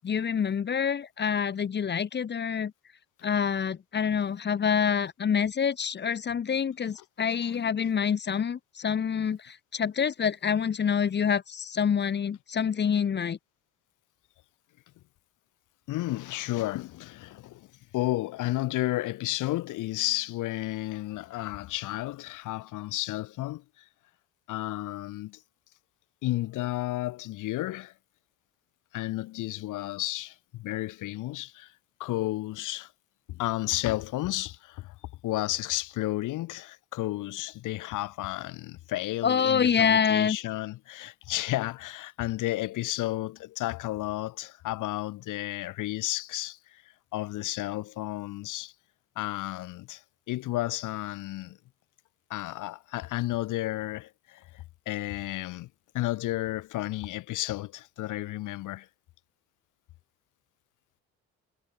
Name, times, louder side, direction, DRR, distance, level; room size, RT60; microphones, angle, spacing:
voice 1, 0.0-2.7 3.2-13.4 39.2-40.4, left 7 dB, 35° left, 0.8 m, -27 dB
voice 2, 15.9-17.7 17.9-23.8 24.5-25.4 26.2-27.9 28.9-31.7 32.0-32.9 33.3-34.9 35.2-46.8 47.1-48.7 49.2-50.0 50.3-51.6 52.3-55.7 55.9-58.9, left 17 dB, 90° left, 1.3 m, -32 dB
cardioid pair, 90°, 30 cm